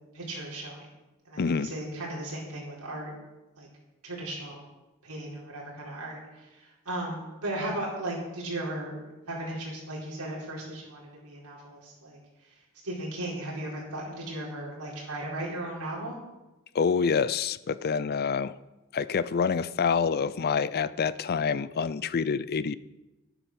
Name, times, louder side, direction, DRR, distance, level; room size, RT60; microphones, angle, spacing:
voice 1, 0.1-0.8 1.2-3.1 3.6-3.7 4.0-4.7 5.0-9.0 9.3-12.2 12.8-16.2, right 1 dB, 85° right, -4 dB, 4.9 m, -36 dB
voice 2, 1.4-1.7 16.7-18.6 18.9-22.7, left 6 dB, 45° left, 17 dB, 0.5 m, -27 dB
11.5 x 10.0 x 6.3 m, 1.1 s
head